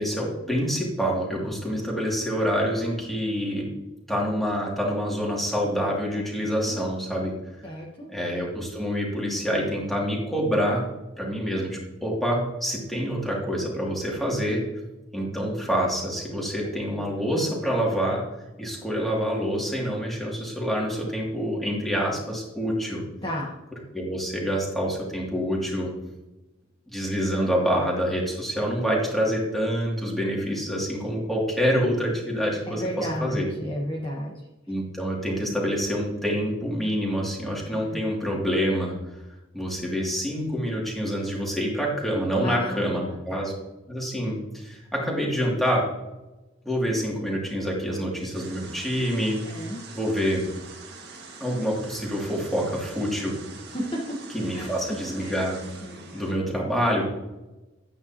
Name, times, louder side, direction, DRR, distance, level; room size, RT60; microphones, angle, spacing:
voice 1, 0.0-3.7 4.1-7.3 8.1-10.8 11.2-14.6 15.1-18.2 18.6-23.0 23.9-25.9 26.9-33.5 34.7-38.9 39.5-43.5 43.9-45.9 46.6-49.4 49.9-50.4 51.4-53.3 54.3-55.6 56.1-57.1, equal, ahead, -4 dB, 2.6 m, -26 dB
voice 2, 7.6-8.1 23.2-23.5 32.7-34.5 37.7-38.0 42.4-43.4 49.4-49.8 53.7-54.2 54.5-54.7 55.2-55.4 55.8-56.3, equal, 25° left, -4 dB, 1.3 m, -33 dB
sound 1, 48.3-56.3, right 4 dB, 50° right, 1.8 m, -44 dB
12.0 x 9.3 x 3.0 m, 1.0 s
head